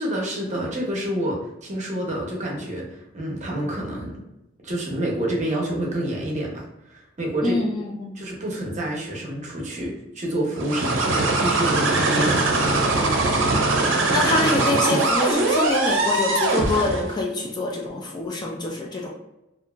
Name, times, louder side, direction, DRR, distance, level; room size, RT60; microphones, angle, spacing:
voice 1, 0.0-4.2 4.6-6.6 6.9-7.6 8.2-12.9, right 1 dB, 40° right, -2 dB, 0.7 m, -28 dB
voice 2, 7.4-8.2 14.1-19.1, left 2 dB, 20° left, -1 dB, 0.3 m, -25 dB
sound 1, 10.6-17.1, right 2 dB, 75° right, 0.6 m, -21 dB
2.8 x 2.4 x 2.2 m, 0.92 s
head